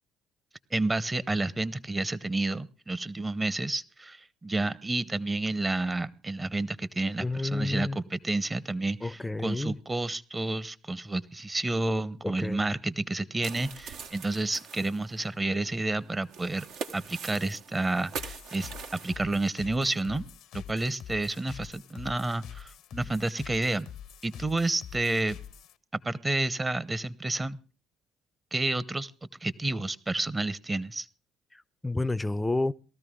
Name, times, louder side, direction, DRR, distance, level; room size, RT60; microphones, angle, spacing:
voice 1, 0.7-16.6 16.9-23.9 24.2-25.4 26.0-27.6 28.5-29.1 29.4-31.1, right 2 dB, 20° right, 0.9 m, -30 dB
voice 2, 7.2-8.0 9.0-9.8 12.2-12.6 31.8-32.7, left 2 dB, 10° left, 0.6 m, -30 dB
sound 1, 13.4-19.2, right 6 dB, 70° right, 1.3 m, -42 dB
sound 2, 18.1-25.7, left 9 dB, 70° left, 0.7 m, -45 dB
18.5 x 13.5 x 3.7 m
hypercardioid pair, 55°, 0 cm